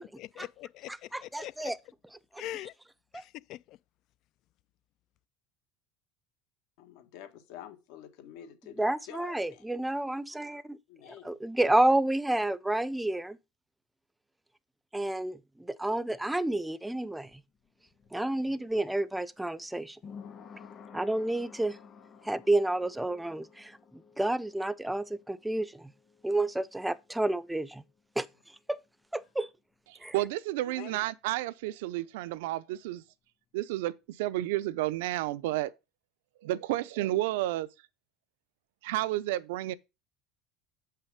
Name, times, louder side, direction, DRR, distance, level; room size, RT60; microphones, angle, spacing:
voice 1, 0.2-1.5 2.4-2.7 3.1-3.8, left 14 dB, 60° left, 0.3 m, -42 dB
voice 2, 0.9-1.8 2.3-2.4 3.1-3.2 8.8-10.8 11.1-13.4 14.9-17.4 18.1-20.0 20.9-21.8 22.2-25.9 26.2-27.8 28.2-28.3 28.7-28.8 29.1-29.5 30.0-30.1, right 1 dB, 5° right, 0.6 m, -30 dB
voice 3, 6.8-9.6 10.9-11.4 30.8-31.0, left 11 dB, 75° left, 1.7 m, -47 dB
sound 1, 17.3-28.5 28.7-28.8, left 6 dB, 40° left, 1.8 m, -53 dB
voice 4, 30.1-33.0 33.5-35.7 36.4-37.7 38.8-39.7, right 16 dB, 85° right, 0.6 m, -31 dB
7.2 x 5.7 x 5.0 m
supercardioid pair, 105°, 0 cm